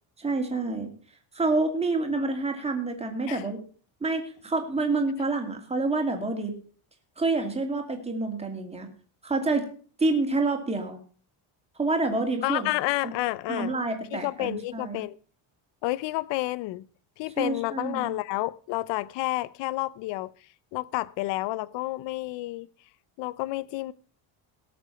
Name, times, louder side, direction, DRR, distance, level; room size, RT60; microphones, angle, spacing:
voice 1, 0.2-0.9 1.3-3.6 4.0-6.5 7.2-8.9 9.2-9.7 10.0-11.0 11.8-12.7 13.5-15.0 17.4-18.1, right 3 dB, 15° right, 2.5 m, -27 dB
voice 2, 12.4-13.7 14.1-15.2 15.8-16.9 17.2-22.7 23.2-23.9, left 18 dB, 65° left, 0.6 m, -30 dB
18.5 x 6.9 x 5.8 m
cardioid pair, 160°, 48 cm